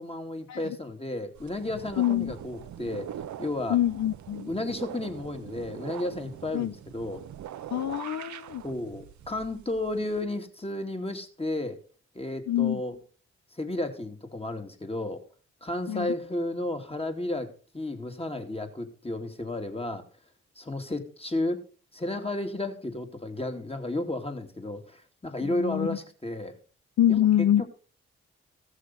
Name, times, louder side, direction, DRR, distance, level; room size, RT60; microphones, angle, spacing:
voice 1, 0.0-3.1 3.4-3.8 4.5-7.2 8.6-11.8 12.1-13.0 13.5-15.2 15.6-17.5 17.7-20.0 20.6-21.6 21.9-26.5 27.1-27.7, left 1 dB, 20° left, 6 dB, 2.5 m, -33 dB
sound 1, 1.3-10.2, right 10 dB, 70° right, 0.7 m, -42 dB
voice 2, 2.0-2.3 3.7-4.5 6.5-6.7 7.7-8.6 12.5-12.8 15.9-16.1 25.4-26.0 27.0-27.6, left 11 dB, 65° left, 13 dB, 0.6 m, -25 dB
15.0 x 6.5 x 5.5 m, 0.41 s
supercardioid pair, 40°, 30 cm